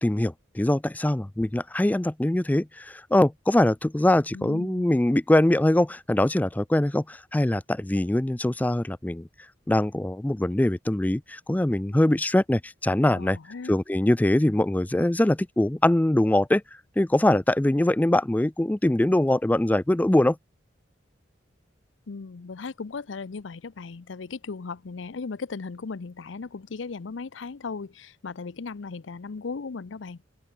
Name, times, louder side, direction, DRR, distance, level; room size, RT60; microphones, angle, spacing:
voice 1, 0.0-9.3 9.7-13.4 13.7-16.6 17.0-20.4, left 1 dB, 10° left, 0.4 m, -23 dB
voice 2, 4.3-4.9 13.1-13.8 22.1-30.2, left 4 dB, 90° left, 0.6 m, -37 dB
open air
head